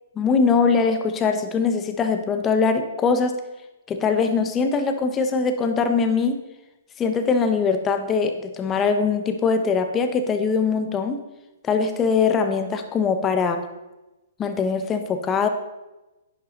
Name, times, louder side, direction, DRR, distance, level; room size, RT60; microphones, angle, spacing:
voice 1, 0.2-3.3 3.9-6.4 7.0-11.2 11.6-13.6 14.4-15.5, left 5 dB, 20° left, 7 dB, 1.1 m, -22 dB
11.0 x 10.0 x 3.9 m, 1.0 s
hypercardioid pair, 125°, 0 cm